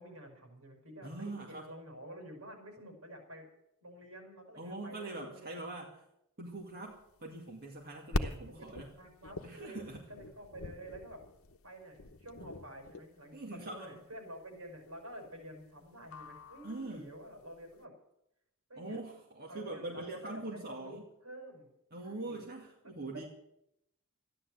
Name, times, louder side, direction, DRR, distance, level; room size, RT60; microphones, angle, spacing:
voice 1, 0.0-3.5 3.8-5.6 8.5-9.8 10.1-11.2 11.6-17.9 18.7-19.0 19.5-21.7 22.0-22.5 23.1-23.3, right 1 dB, 80° right, 2 dB, 5.6 m, -49 dB
voice 2, 1.0-1.7 4.5-5.9 6.4-8.9 9.4-10.0 13.3-14.0 16.6-17.1 18.7-21.0 21.9-23.3, right 2 dB, 50° right, -1 dB, 2.3 m, -43 dB
sound 1, 6.6-17.7, left 2 dB, 75° left, 0.9 m, -43 dB
14.0 x 11.0 x 7.9 m, 0.80 s
head